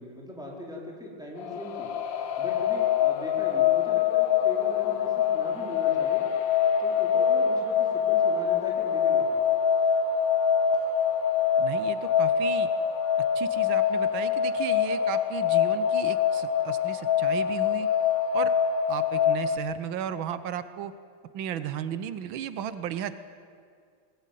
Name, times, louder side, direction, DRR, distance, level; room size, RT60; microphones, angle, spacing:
voice 1, 0.0-1.9 2.4-6.2 6.8-9.5, left 1 dB, ahead, -2 dB, 4.4 m, -40 dB
sound 1, 1.4-19.6, left 8 dB, 75° left, 1.7 m, -25 dB
voice 2, 11.6-12.7 13.3-17.9 18.3-18.5 18.9-20.9 21.3-23.1, right 9 dB, 85° right, 13 dB, 1.6 m, -34 dB
21.5 x 19.5 x 9.2 m, 2.2 s
omnidirectional pair, 2.1 m